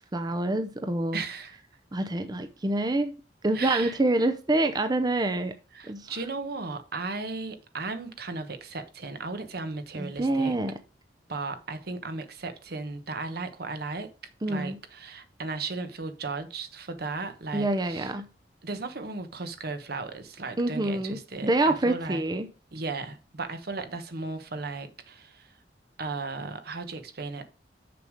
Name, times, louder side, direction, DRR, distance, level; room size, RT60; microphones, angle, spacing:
voice 1, 0.1-1.2 1.9-3.1 3.4-5.5 5.9-6.1 10.0-10.8 14.4-14.8 17.5-18.3 20.6-22.5, right 2 dB, 25° right, 0.6 m, -26 dB
voice 2, 1.1-1.6 3.5-4.0 5.7-10.6 11.3-14.1 14.5-18.1 18.6-22.2 22.7-25.6 26.0-27.4, right 3 dB, 65° right, 1.2 m, -36 dB
6.8 x 6.4 x 5.0 m
head